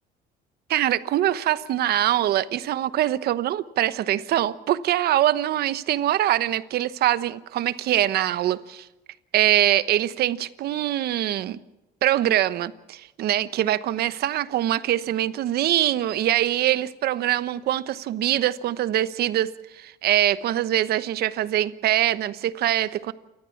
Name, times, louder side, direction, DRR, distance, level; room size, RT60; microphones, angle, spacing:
voice 1, 0.7-8.9 9.3-11.6 12.0-23.1, right 12 dB, 70° right, 1.1 m, -23 dB
29.5 x 14.0 x 7.2 m
cardioid pair, 110°, 17 cm